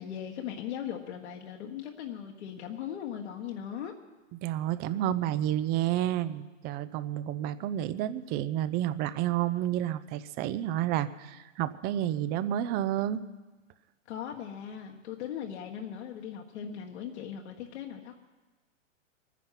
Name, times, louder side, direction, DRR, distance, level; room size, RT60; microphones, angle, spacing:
voice 1, 0.0-3.9 14.1-18.2, left 9 dB, 60° left, 0 dB, 1.6 m, -39 dB
voice 2, 4.4-13.2, right 12 dB, 25° right, 15 dB, 0.6 m, -30 dB
23.0 x 10.0 x 5.9 m, 1.2 s
hypercardioid pair, 120°, 38 cm